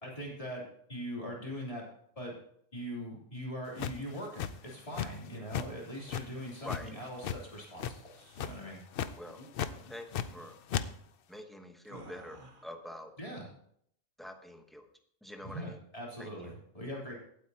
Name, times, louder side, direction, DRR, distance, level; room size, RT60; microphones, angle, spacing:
voice 1, 0.0-0.6 0.9-1.8 2.2-2.3 2.7-8.8 13.2-13.5 15.4-17.2, equal, 30° left, -3 dB, 3.5 m, -41 dB
sound 1, 3.8-5.3 5.5-5.7 6.1-7.4 7.8-8.1 8.3-8.6 8.9-9.1 9.5-10.4 10.7-10.9, left 9 dB, 60° left, 0.7 m, -35 dB
sound 2, 6.3-7.1 8.0-8.6 9.3-9.5 9.7-10.0 10.3-10.5 11.8-12.8, right 1 dB, 45° right, 1.5 m, -55 dB
voice 2, 9.9-10.6 11.3-13.1 14.2-14.9 15.2-15.8 16.2-16.3, left 1 dB, ahead, 5 dB, 0.9 m, -46 dB
17.5 x 8.3 x 2.9 m, 0.67 s
omnidirectional pair, 1.2 m